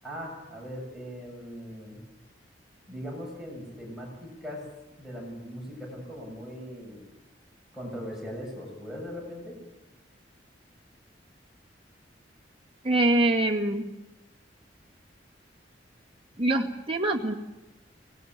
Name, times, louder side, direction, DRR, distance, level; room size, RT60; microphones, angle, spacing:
voice 1, 0.0-2.0 2.9-4.6 5.0-7.1 7.7-9.6, equal, ahead, -2 dB, 7.1 m, -39 dB
voice 2, 12.8-13.9 16.4-17.3, right 1 dB, 30° right, -1 dB, 2.1 m, -24 dB
24.0 x 19.0 x 9.5 m, 1.0 s
head